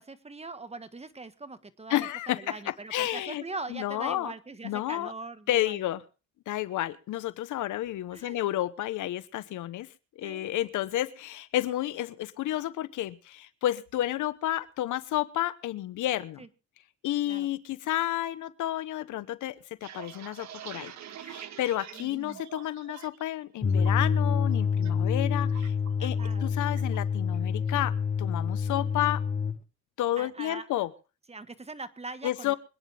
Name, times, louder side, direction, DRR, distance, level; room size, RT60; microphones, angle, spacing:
voice 1, 0.0-5.8 8.1-8.4 10.2-10.5 16.4-16.5 17.2-17.5 21.9-22.4 26.0-26.5 30.2-30.7 31.3-32.6, right 3 dB, 20° right, 12 dB, 1.4 m, -42 dB
voice 2, 1.9-3.4 3.7-4.3 4.6-5.1 5.5-6.0 6.5-9.9 10.2-16.4 17.0-20.9 21.2-25.7 26.0-27.9 28.2-29.2 30.0-30.9 32.2-32.6, left 14 dB, 80° left, 15 dB, 1.0 m, -31 dB
sound 1, 19.6-23.2 23.6-24.1 24.5-24.9 25.2-26.4 26.8-27.0 27.3-27.8, right 10 dB, 65° right, 1.5 m, -45 dB
sound 2, 23.6-29.6, left 6 dB, 25° left, 1.0 m, -27 dB
25.0 x 10.0 x 3.4 m, 0.34 s
cardioid pair, 90°, 30 cm